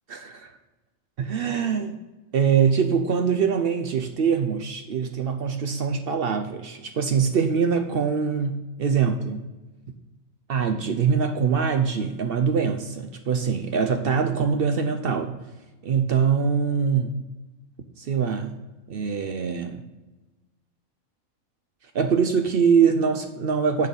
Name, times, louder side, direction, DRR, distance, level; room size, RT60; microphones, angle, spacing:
voice 1, 0.1-0.5 1.2-1.9 2.3-9.5 10.5-15.4 15.8-17.1 18.0-18.5 18.9-19.8 21.9-23.9, right 6 dB, 60° right, 7 dB, 0.6 m, -23 dB
6.6 x 6.4 x 5.3 m, 1.1 s
omnidirectional pair, 1.5 m